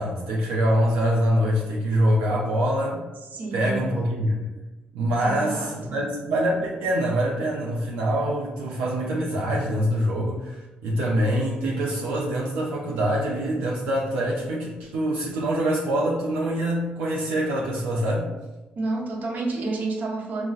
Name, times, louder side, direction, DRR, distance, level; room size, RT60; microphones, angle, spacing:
voice 1, 0.0-3.0 3.5-4.4 4.9-18.3, equal, 90° right, -4 dB, 0.4 m, -24 dB
voice 2, 3.3-3.9 5.2-6.0 18.8-20.5, right 3 dB, 60° right, -1 dB, 0.8 m, -30 dB
3.8 x 2.0 x 2.4 m, 1.1 s
supercardioid pair, 65°, 3 cm